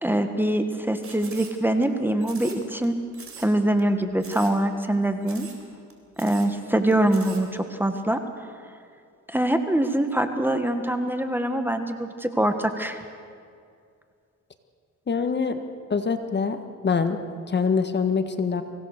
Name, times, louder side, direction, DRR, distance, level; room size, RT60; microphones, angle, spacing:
voice 1, 0.0-2.9 3.4-5.5 6.2-8.2 9.3-13.0, right 1 dB, 5° right, 7 dB, 1.5 m, -24 dB
sound 1, 1.0-1.9 2.2-2.9 3.1-3.5 3.8-3.9 4.2-4.6 4.8-4.9 5.2-5.6 5.9-6.0 6.2-6.5 6.9-7.4, right 6 dB, 45° right, 3.8 m, -43 dB
voice 2, 15.1-15.6 15.9-17.2 17.5-18.6, left 5 dB, 35° left, 8 dB, 1.5 m, -24 dB
24.0 x 17.0 x 6.7 m, 2.3 s
cardioid pair, 90°, 30 cm